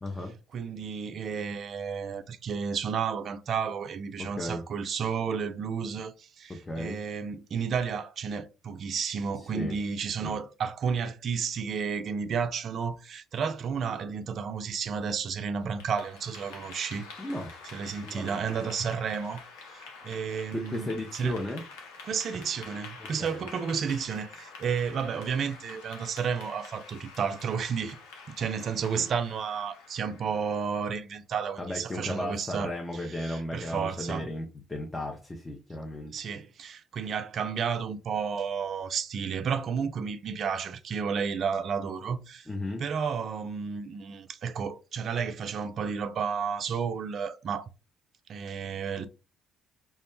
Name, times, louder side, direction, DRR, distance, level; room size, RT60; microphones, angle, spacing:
voice 1, 0.0-0.3 4.2-4.6 6.5-7.0 9.4-9.8 10.2-10.4 17.2-17.5 18.0-18.6 20.5-21.6 23.0-23.4 31.6-36.2 42.5-42.8, left 1 dB, 20° left, 0.5 m, -35 dB
voice 2, 0.5-17.1 17.7-19.4 19.7-21.4 22.0-28.0 28.3-34.3 36.1-42.5 42.8-47.6 48.3-49.1, right 6 dB, 55° right, 0.3 m, -32 dB
Clapping / Applause, 15.6-30.8, left 4 dB, 75° left, 0.5 m, -48 dB
2.2 x 2.0 x 3.0 m
hypercardioid pair, 50°, 0 cm